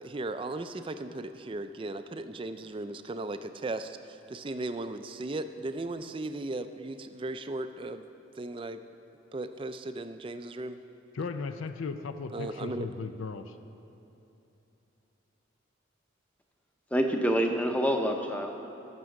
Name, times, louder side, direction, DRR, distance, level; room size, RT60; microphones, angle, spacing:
voice 1, 0.0-8.1 8.4-8.8 9.3-10.8 12.3-12.9, right 2 dB, 25° right, 10 dB, 0.3 m, -36 dB
voice 2, 11.1-13.6, left 4 dB, 85° left, 9 dB, 0.5 m, -36 dB
voice 3, 16.9-18.5, equal, 5° left, 4 dB, 0.7 m, -27 dB
13.5 x 6.1 x 6.4 m, 2.9 s
head